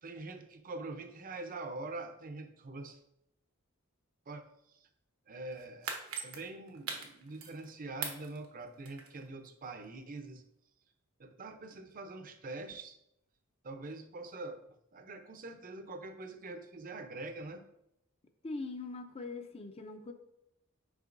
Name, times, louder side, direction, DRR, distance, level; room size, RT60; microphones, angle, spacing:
voice 1, 0.0-3.0 4.3-4.4 4.7-4.9 5.3-6.0 6.2-10.4 11.2-13.0 13.6-14.6 14.9-17.6, right 2 dB, 40° right, 8 dB, 0.6 m, -44 dB
sound 1, 5.5-7.7 8.0-9.3 9.6-9.7, right 6 dB, 85° right, 1.1 m, -41 dB
voice 2, 18.4-20.1, left 3 dB, 30° left, 6 dB, 0.5 m, -41 dB
8.1 x 5.4 x 2.6 m, 0.77 s
head